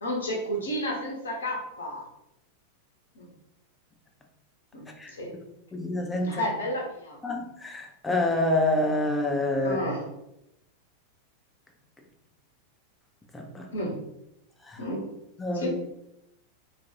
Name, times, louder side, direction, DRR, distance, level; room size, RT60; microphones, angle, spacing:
voice 1, 0.0-2.0 3.1-3.3 4.7-4.8 5.1-5.3 6.2-7.2 9.6-10.1 13.7-14.0 14.8-15.1 15.5-15.7, equal, 70° left, -2 dB, 0.8 m, -31 dB
voice 2, 5.7-6.4 7.2-9.8 13.3-13.7 14.7-14.8 15.4-15.7, left 1 dB, 10° left, 2 dB, 0.4 m, -27 dB
2.4 x 2.2 x 2.8 m, 0.82 s
figure-of-eight pair, 90°, 0 cm